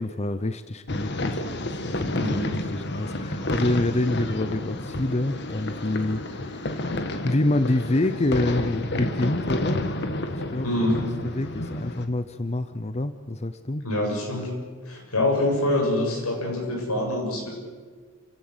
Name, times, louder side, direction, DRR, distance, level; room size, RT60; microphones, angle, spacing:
voice 1, 0.0-9.9 10.3-10.7 11.2-13.8, left 2 dB, 30° left, 11 dB, 0.7 m, -27 dB
sound 1, 0.9-12.1, left 1 dB, 50° left, 1.6 m, -30 dB
voice 2, 2.1-2.5 10.6-11.0 13.8-14.5 14.8-17.5, left 1 dB, 80° left, 1 dB, 7.5 m, -25 dB
29.5 x 16.5 x 8.0 m, 1.5 s
head